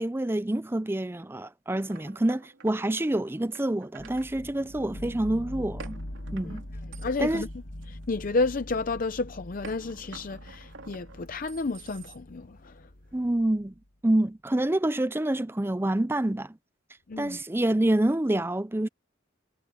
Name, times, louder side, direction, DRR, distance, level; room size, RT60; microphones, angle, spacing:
voice 1, 0.0-6.0 6.3-6.6 7.2-7.4 13.1-13.7 14.0-16.6 17.2-18.9, right 1 dB, 10° right, 0.5 m, -27 dB
sound 1, 1.7-4.3 5.8-8.4 9.6-12.5, right 4 dB, 80° right, 3.1 m, -49 dB
sound 2, 4.0-13.8, left 1 dB, 70° left, 2.2 m, -43 dB
voice 2, 7.0-7.5 7.9-12.7 17.1-17.4, left 3 dB, 45° left, 0.6 m, -31 dB
head